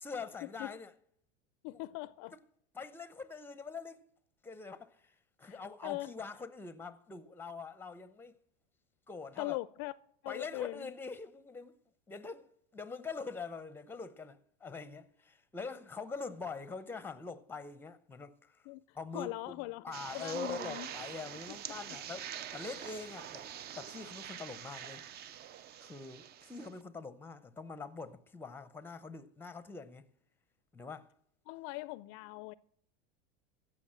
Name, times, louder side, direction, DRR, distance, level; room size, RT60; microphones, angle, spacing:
voice 1, 0.0-0.9 1.7-1.8 2.3-2.4 2.7-4.0 4.4-8.4 9.1-9.6 10.3-11.8 12.1-18.7 18.9-23.5 23.7-25.1 25.8-30.1 30.7-31.1, left 4 dB, 5° left, 0.7 m, -44 dB
voice 2, 1.6-2.3 5.5-5.6 5.8-6.1 9.4-9.9 10.2-10.9 18.7-18.8 19.1-19.8 20.1-20.9 31.5-32.5, left 21 dB, 50° left, 0.4 m, -40 dB
sound 1, 19.9-26.7, right 9 dB, 30° right, 0.5 m, -45 dB
15.5 x 6.2 x 7.5 m
supercardioid pair, 120°, 31 cm